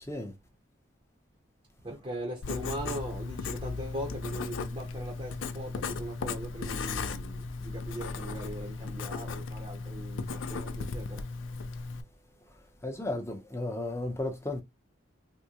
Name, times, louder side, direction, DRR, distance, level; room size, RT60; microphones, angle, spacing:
voice 1, 1.8-11.3, right 1 dB, 25° right, 0.7 m, -40 dB
Writing, 2.4-12.0, left 4 dB, 80° left, 0.4 m, -36 dB
voice 2, 12.8-14.6, left 2 dB, 15° left, 0.6 m, -34 dB
3.5 x 2.1 x 2.8 m
head